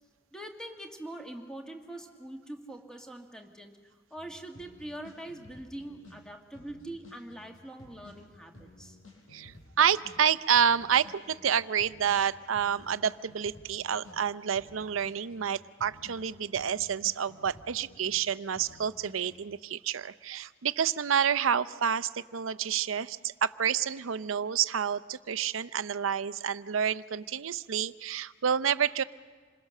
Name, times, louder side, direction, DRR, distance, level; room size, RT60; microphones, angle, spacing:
voice 1, 0.3-9.0, right 1 dB, 5° left, 3 dB, 1.9 m, -43 dB
sound 1, 4.2-6.2 6.5-10.2 10.5-14.2 14.5-18.2 18.5-19.4, left 2 dB, 85° left, 7.4 m, -53 dB
voice 2, 9.8-29.0, right 8 dB, 85° right, 15 dB, 0.6 m, -29 dB
28.0 x 21.5 x 6.5 m, 1.5 s
head